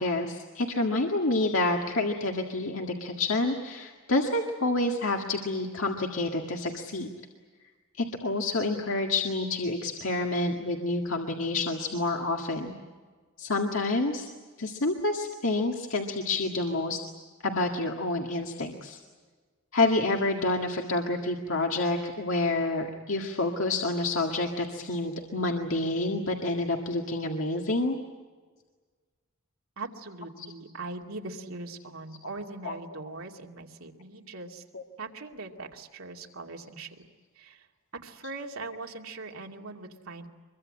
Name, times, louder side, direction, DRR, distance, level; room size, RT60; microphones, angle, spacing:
voice 1, 0.0-7.1 8.0-12.7 13.4-14.3 14.6-17.0 17.4-19.0 19.7-28.0 30.4-30.5 32.6-32.8 34.7-34.8, left 2 dB, 70° left, 2 dB, 1.9 m, -28 dB
voice 2, 29.8-34.6 35.0-37.0 37.4-37.7 38.0-40.3, right 3 dB, 90° right, 1 dB, 2.5 m, -41 dB
25.0 x 23.0 x 8.8 m, 1.4 s
head